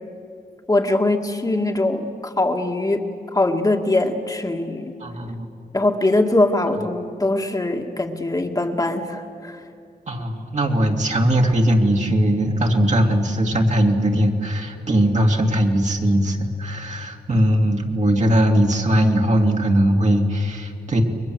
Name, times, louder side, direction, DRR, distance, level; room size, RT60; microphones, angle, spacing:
voice 1, 0.7-4.9 5.7-9.6, left 2 dB, 25° left, 2 dB, 2.1 m, -22 dB
voice 2, 5.0-5.5 10.1-21.0, equal, 50° right, 2 dB, 2.8 m, -19 dB
30.0 x 23.0 x 8.0 m, 2.5 s
wide cardioid pair, 95°, 16 cm